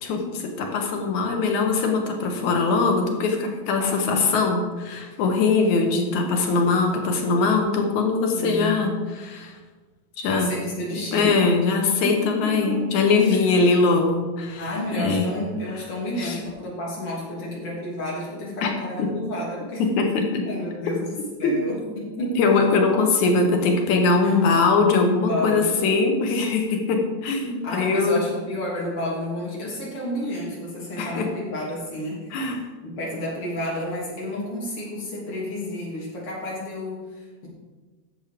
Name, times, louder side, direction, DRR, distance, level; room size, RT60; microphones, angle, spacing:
voice 1, 0.0-9.5 10.2-10.5 11.1-15.3 16.2-16.4 18.6-18.7 19.0-19.1 19.8-20.4 21.4-21.5 22.2-28.2 31.0-31.3 32.3-32.6, left 4 dB, 85° left, 3 dB, 2.6 m, -22 dB
voice 2, 3.8-4.3 5.8-6.6 8.3-9.0 10.3-11.3 12.0-12.8 13.3-13.4 14.6-19.8 20.4-22.3 24.2-24.4 25.1-25.9 27.6-32.6 32.8-37.5, left 1 dB, 50° left, -5 dB, 4.0 m, -31 dB
11.0 x 7.5 x 5.1 m, 1.3 s
omnidirectional pair, 3.3 m